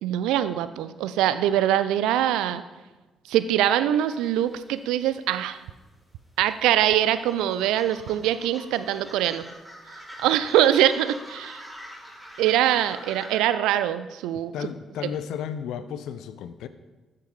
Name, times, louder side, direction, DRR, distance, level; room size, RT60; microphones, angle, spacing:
voice 1, 0.0-2.6 3.3-5.6 6.4-9.5 10.2-11.7 12.4-14.5, right 11 dB, 70° right, 13 dB, 0.6 m, -23 dB
sound 1, 4.0-5.6 5.9-13.4, equal, ahead, 4.7 m, -45 dB
voice 2, 14.5-16.7, left 8 dB, 65° left, 12 dB, 0.8 m, -33 dB
13.0 x 9.7 x 5.4 m, 1.2 s
figure-of-eight pair, 40°, 0 cm